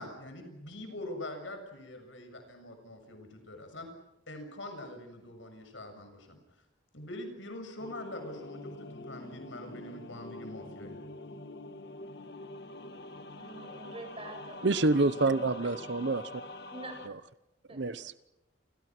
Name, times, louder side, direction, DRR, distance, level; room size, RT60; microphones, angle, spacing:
voice 1, 0.0-3.9 4.3-6.4 6.9-11.0, left 1 dB, 75° left, 6 dB, 7.2 m, -44 dB
sound 1, 7.8-17.1, left 1 dB, 55° left, 1.5 m, -45 dB
voice 2, 13.3-14.7 15.0-15.4 16.7-17.0 17.7-17.8, right 2 dB, 30° right, 4 dB, 7.4 m, -46 dB
voice 3, 14.6-16.4 17.7-18.1, right 2 dB, 65° right, 14 dB, 0.9 m, -27 dB
29.5 x 26.0 x 6.1 m, 0.91 s
head